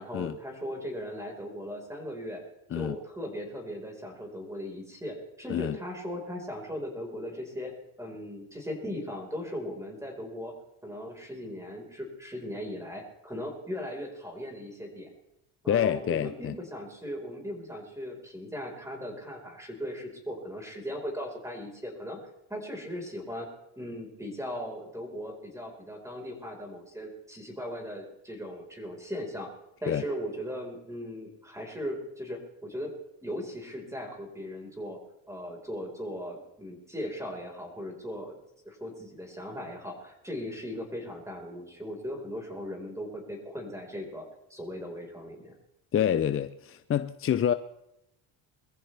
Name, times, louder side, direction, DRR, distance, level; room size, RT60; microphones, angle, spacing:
voice 1, 0.0-2.4 2.7-7.7 8.0-10.5 10.8-15.1 15.6-22.2 22.5-23.5 23.8-29.5 29.8-32.9 33.2-35.0 35.3-38.4 38.6-45.5, equal, 5° right, 4.6 m, -38 dB
voice 2, 15.7-16.6 29.9-30.0 45.9-47.5, left 9 dB, 30° left, 0.5 m, -27 dB
22.5 x 14.5 x 3.4 m
cardioid pair, 105°, 47 cm